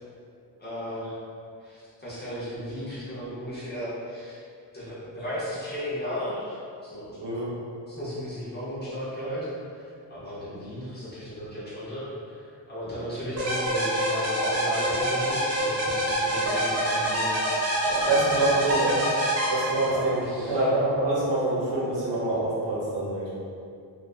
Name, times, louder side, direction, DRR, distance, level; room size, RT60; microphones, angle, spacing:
voice 1, 0.6-1.2 1.6-4.4 4.7-7.2 7.9-9.5 9.7-9.8 10.1-18.8 19.9-20.6, equal, 25° left, -11 dB, 0.6 m, -35 dB
sound 1, 13.4-20.2, right 1 dB, 35° right, 0.5 m, -26 dB
voice 2, 18.1-19.0 19.5-20.2 20.5-23.3, right 2 dB, 90° right, -7 dB, 0.8 m, -25 dB
2.4 x 2.2 x 2.3 m, 2.4 s
wide cardioid pair, 170°, 43 cm